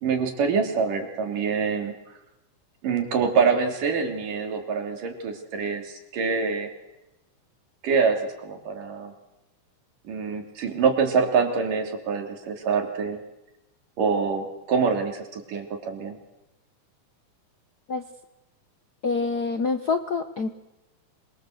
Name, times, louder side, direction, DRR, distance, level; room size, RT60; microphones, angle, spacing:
voice 1, 0.0-1.9 2.8-6.7 7.8-9.1 10.1-13.2 14.0-16.2, right 5 dB, 90° right, 5 dB, 4.8 m, -25 dB
voice 2, 19.0-20.5, left 4 dB, 60° left, 8 dB, 1.0 m, -26 dB
26.0 x 23.5 x 8.0 m, 0.93 s
omnidirectional pair, 3.6 m